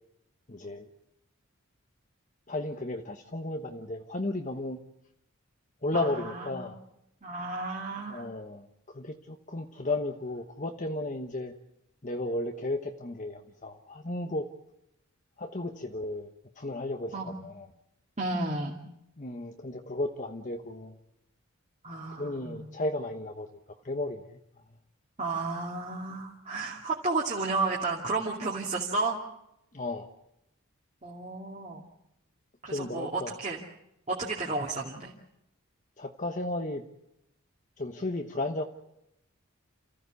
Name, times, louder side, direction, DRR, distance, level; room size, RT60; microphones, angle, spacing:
voice 1, 0.5-0.9 2.5-4.8 5.8-6.8 8.1-8.7 8.9-11.5 12.0-14.5 15.4-16.3 16.6-17.7 19.2-21.0 22.2-23.5 23.8-24.4 29.7-30.1 32.7-33.4 36.0-36.8 37.8-38.6, left 2 dB, 35° left, 4 dB, 1.1 m, -34 dB
voice 2, 5.9-6.7 7.2-8.3 17.1-17.4 18.2-18.8 21.8-22.8 25.2-29.2 31.0-31.8 32.6-33.6 34.1-35.1, right 3 dB, 30° right, -2 dB, 2.4 m, -32 dB
28.5 x 15.0 x 8.2 m, 0.85 s
head